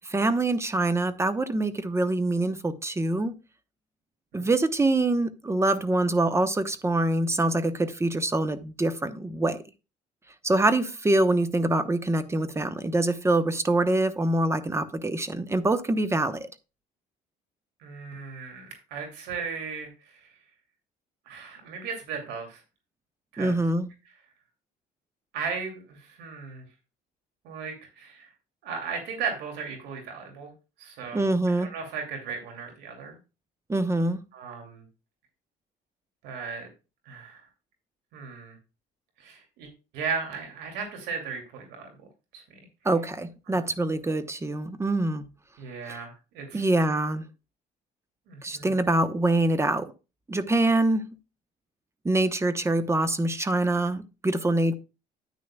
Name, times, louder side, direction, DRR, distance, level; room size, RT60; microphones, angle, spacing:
voice 1, 0.0-3.4 4.3-9.6 10.4-16.5 23.4-23.9 31.1-31.7 33.7-34.2 42.8-45.3 45.9-46.0 46.5-47.2 48.4-49.9 50.3-51.1 52.0-54.7, right 2 dB, 15° right, 0.9 m, -25 dB
voice 2, 17.8-19.9 21.3-22.6 23.3-23.6 25.3-26.6 27.4-28.3 28.6-30.5 30.8-33.2 34.3-34.8 36.2-36.7 37.1-37.4 38.1-38.6 39.2-39.7 39.9-41.9 42.3-42.4 43.5-43.6 45.6-46.6 48.3-48.7, right 5 dB, 85° right, 2.6 m, -36 dB
9.6 x 9.3 x 2.3 m
cardioid pair, 110°, 17 cm